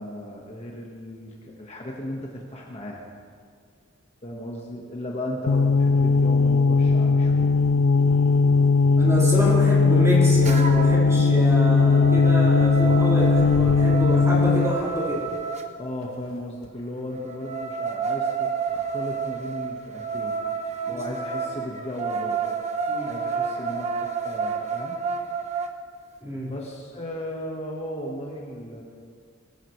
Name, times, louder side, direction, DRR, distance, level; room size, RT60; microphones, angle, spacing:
voice 1, 0.0-3.1 4.2-7.5 15.8-20.4 20.8-22.5 23.0-25.0 26.5-28.8, left 1 dB, 35° left, -1 dB, 1.5 m, -36 dB
sound 1, 5.5-14.8, left 4 dB, 70° left, 0.4 m, -18 dB
sound 2, 5.9-6.0 6.7-8.6 9.1-11.4 12.0-14.8, equal, 50° left, 1.9 m, -42 dB
voice 2, 9.0-15.2 20.9-21.0 22.9-23.1 26.2-26.5, equal, 15° right, -7 dB, 4.5 m, -27 dB
sound 3, 10.4-11.1 11.5-15.7 17.1-25.7, right 5 dB, 35° right, 1.0 m, -30 dB
22.0 x 15.5 x 3.3 m, 2.1 s
head